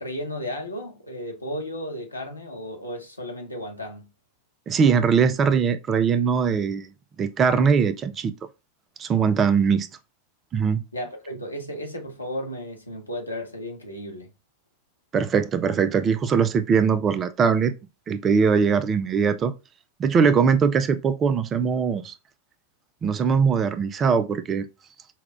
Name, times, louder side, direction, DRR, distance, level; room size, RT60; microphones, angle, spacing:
voice 1, 0.0-4.1 10.9-14.3, equal, 85° left, 1.0 m, -34 dB
voice 2, 4.7-6.9 7.2-8.3 9.0-9.9 10.5-10.8 15.1-17.7 18.1-19.5 20.0-22.1 23.0-24.7, right 6 dB, 25° right, 0.4 m, -21 dB
5.6 x 2.2 x 2.4 m
figure-of-eight pair, 90°, 0 cm